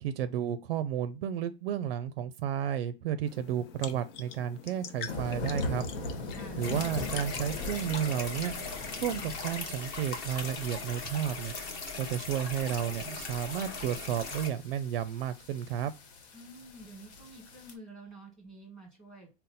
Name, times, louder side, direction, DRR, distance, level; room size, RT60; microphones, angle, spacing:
voice 1, 0.0-5.8 6.6-8.5 9.0-11.6 12.0-15.9, right 9 dB, 60° right, 0.4 m, -32 dB
sound 1, 3.3-9.1, left 6 dB, 55° left, 0.7 m, -45 dB
sound 2, 5.1-17.7, left 2 dB, 75° left, 1.1 m, -41 dB
voice 2, 6.3-6.6 16.3-19.3, right 2 dB, ahead, 1.3 m, -49 dB
sound 3, 6.6-14.5, left 4 dB, 30° left, 0.8 m, -39 dB
4.0 x 2.0 x 3.8 m
hypercardioid pair, 145°, 33 cm